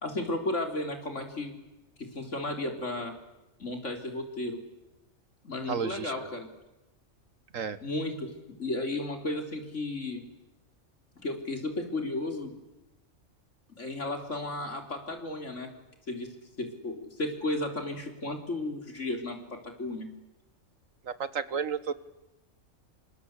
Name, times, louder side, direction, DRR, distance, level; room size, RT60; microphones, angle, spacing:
voice 1, 0.0-1.5 2.0-3.1 3.6-4.6 5.4-6.5 7.8-8.3 8.6-10.2 11.2-12.5 13.7-15.7 16.1-16.3 16.6-19.4 19.6-20.1, left 2 dB, 65° left, 5 dB, 4.2 m, -34 dB
voice 2, 5.7-6.1 7.5-7.8 21.1-21.9, right 6 dB, 85° right, 14 dB, 1.7 m, -32 dB
27.5 x 25.5 x 8.3 m, 0.99 s
omnidirectional pair, 1.3 m